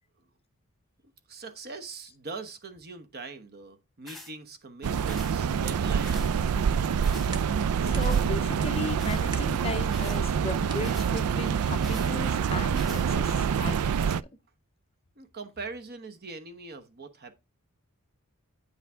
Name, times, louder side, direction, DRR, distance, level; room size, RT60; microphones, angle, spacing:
voice 1, 1.3-6.5 15.2-17.3, right 3 dB, 45° right, 1.1 m, -42 dB
sound 1, 4.1-4.3 5.1-5.3 6.0-6.3 7.0-7.3 8.0-8.3 9.0-9.3 9.9-10.2 10.8-11.1 11.8-12.1 12.8-13.1, left 1 dB, ahead, 1.3 m, -45 dB
sound 2, 4.8-14.2, right 7 dB, 75° right, 0.4 m, -26 dB
sound 3, 5.7-11.7, right 2 dB, 20° right, 1.0 m, -49 dB
voice 2, 7.8-14.1, left 3 dB, 25° left, 0.6 m, -36 dB
9.2 x 5.5 x 3.5 m
head